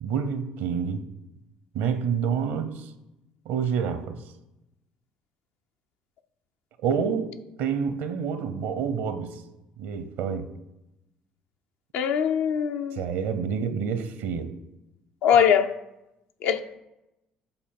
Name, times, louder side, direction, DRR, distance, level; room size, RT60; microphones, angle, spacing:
voice 1, 0.0-1.0 1.7-2.9 3.4-4.2 6.8-9.4 9.8-10.5 12.9-14.5, right 7 dB, 70° right, 0.8 m, -28 dB
voice 2, 11.9-13.0 15.2-15.7 16.4-16.6, left 8 dB, 65° left, 0.6 m, -21 dB
7.9 x 4.1 x 5.8 m
hypercardioid pair, 55°, 4 cm